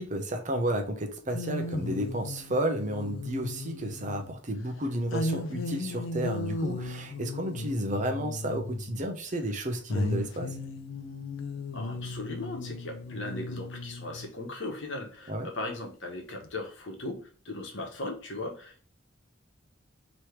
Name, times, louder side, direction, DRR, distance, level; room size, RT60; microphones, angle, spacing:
voice 1, 0.0-10.5 15.3-15.5, right 1 dB, 40° right, 0.7 m, -32 dB
sound 1, 1.3-4.4 5.1-9.1 9.9-14.3 16.4-16.5, left 2 dB, 85° left, 0.5 m, -36 dB
voice 2, 11.7-18.8, left 2 dB, 65° left, 1.1 m, -38 dB
3.3 x 3.1 x 4.4 m
head